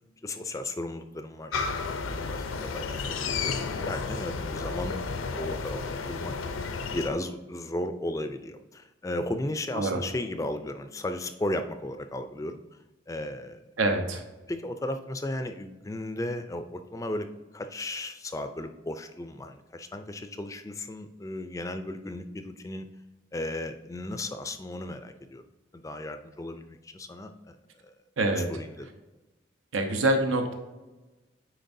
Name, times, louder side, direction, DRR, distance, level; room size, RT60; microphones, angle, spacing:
voice 1, 0.2-6.3 6.9-12.6 13.1-13.6 14.5-17.3 17.5-22.9 23.3-25.4 25.7-27.6 27.8-27.9 28.5-28.9, left 1 dB, 15° left, 9 dB, 0.3 m, -35 dB
sound 1, 1.5-7.1, left 4 dB, 85° left, 0.6 m, -32 dB
voice 2, 13.8-14.2 28.2-28.5 28.8-28.9 29.7-30.5, right 2 dB, 85° right, 5 dB, 0.9 m, -25 dB
9.1 x 4.4 x 2.6 m, 1.1 s
head